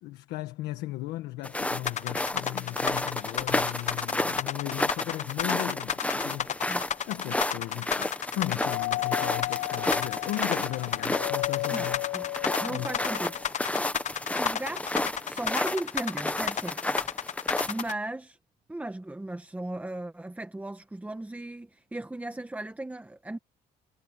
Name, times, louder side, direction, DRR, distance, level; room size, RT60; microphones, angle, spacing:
voice 1, 0.0-6.5 7.1-12.0 12.7-12.9, left 16 dB, 90° left, 1.4 m, -36 dB
sound 1, 1.4-17.9, left 1 dB, 10° left, 1.1 m, -32 dB
sound 2, 1.9-17.9, left 9 dB, 45° left, 0.8 m, -32 dB
Doorbell, 8.6-13.5, left 22 dB, 65° left, 1.3 m, -34 dB
voice 2, 11.7-12.3 12.6-13.3 13.7-13.9 14.3-17.0 17.7-18.4 18.7-23.4, right 2 dB, 10° right, 1.4 m, -37 dB
cardioid pair, 110°, 17 cm